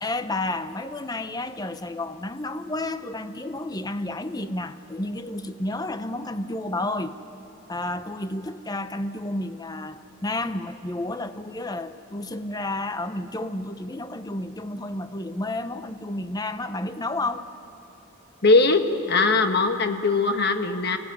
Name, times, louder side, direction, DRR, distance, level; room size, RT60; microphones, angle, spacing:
voice 1, 0.0-7.2 7.7-17.5, left 2 dB, 20° left, 10 dB, 0.7 m, -31 dB
voice 2, 18.4-18.8 19.1-21.0, left 3 dB, 50° left, 7 dB, 1.3 m, -20 dB
23.0 x 16.5 x 9.3 m, 3.0 s
head